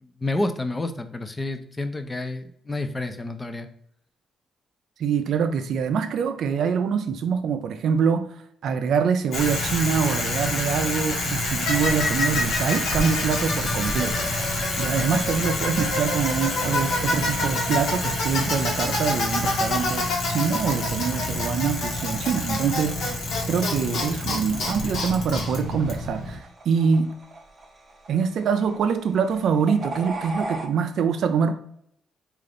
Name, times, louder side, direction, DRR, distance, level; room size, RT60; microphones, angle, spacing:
voice 1, 0.0-3.7, left 2 dB, 20° left, 0.4 m, -29 dB
voice 2, 5.0-8.4 8.6-27.1 28.1-31.6, right 6 dB, 70° right, 0.3 m, -25 dB
Bicycle, 9.3-26.4, left 2 dB, 75° left, 1.1 m, -26 dB
sound 1, 14.2-30.7, right 2 dB, 35° right, 0.7 m, -41 dB
3.7 x 2.4 x 3.3 m
cardioid pair, 90°, 0 cm